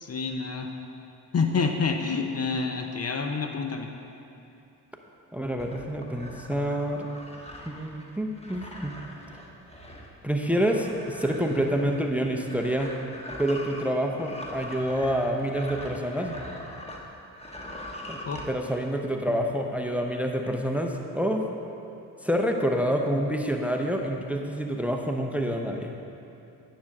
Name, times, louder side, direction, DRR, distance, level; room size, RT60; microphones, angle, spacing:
voice 1, 0.0-0.7 1.3-3.9 18.3-18.4, left 4 dB, 40° left, 4 dB, 0.7 m, -28 dB
voice 2, 5.3-7.1 7.7-8.9 10.2-12.9 13.4-16.4 18.1-18.2 18.5-21.4 22.2-25.9, equal, 5° right, 3 dB, 0.7 m, -27 dB
sound 1, 5.6-17.0 17.3-18.5, left 1 dB, 15° left, 1.2 m, -42 dB
9.7 x 6.4 x 3.6 m, 2.8 s
supercardioid pair, 55°, 41 cm